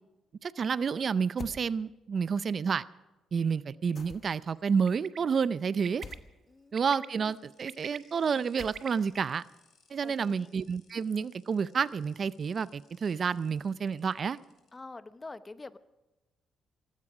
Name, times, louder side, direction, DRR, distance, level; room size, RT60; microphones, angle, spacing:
voice 1, 0.4-2.8 3.3-6.0 6.7-9.4 9.9-14.4, right 6 dB, 45° right, 0.5 m, -30 dB
sound 1, 1.4-1.6 4.0-4.5 6.0-6.3 8.6-9.1, left 5 dB, 45° left, 1.2 m, -44 dB
Bird, 4.9-5.2 5.8-6.1 6.8-7.1 7.5-8.9, right 8 dB, 60° right, 0.9 m, -43 dB
sound 2, 7.3-14.7, left 6 dB, 60° left, 5.0 m, -67 dB
voice 2, 10.0-10.5 14.7-15.8, left 3 dB, 25° left, 0.8 m, -46 dB
18.0 x 16.0 x 4.9 m
cardioid pair, 90°, 0 cm